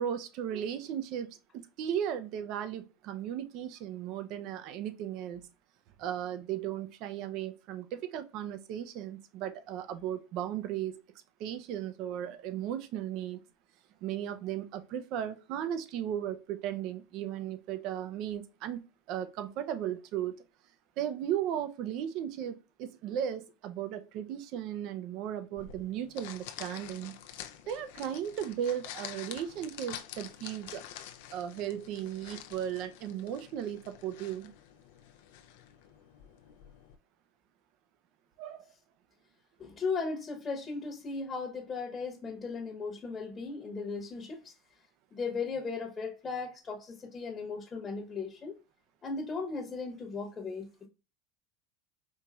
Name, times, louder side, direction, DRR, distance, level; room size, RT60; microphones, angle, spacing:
voice 1, 0.0-5.5 6.0-11.0 11.4-13.4 14.0-18.8 19.1-20.3 21.0-27.1 27.7-30.8 31.3-34.5 38.4-38.7, right 10 dB, 60° right, 0.5 m, -36 dB
sound 1, 25.6-37.0, left 11 dB, 70° left, 0.4 m, -48 dB
voice 2, 39.6-44.5 45.1-48.6 49.0-50.9, left 4 dB, 25° left, 0.9 m, -37 dB
4.5 x 2.9 x 2.3 m
hypercardioid pair, 95°, 0 cm